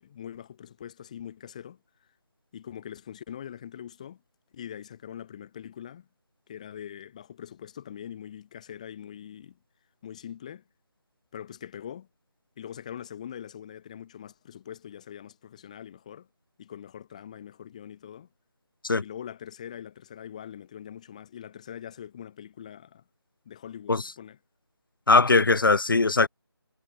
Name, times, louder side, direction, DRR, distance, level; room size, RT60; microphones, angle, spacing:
voice 1, 0.0-2.1 2.5-4.2 4.5-6.1 6.5-9.6 10.0-10.6 11.3-12.1 12.6-16.3 16.6-18.3 19.0-23.0 23.5-24.4, left 9 dB, 15° left, 2.0 m, -43 dB
voice 2, 25.1-26.3, left 3 dB, 55° left, 2.0 m, -20 dB
figure-of-eight pair, 170°, 14 cm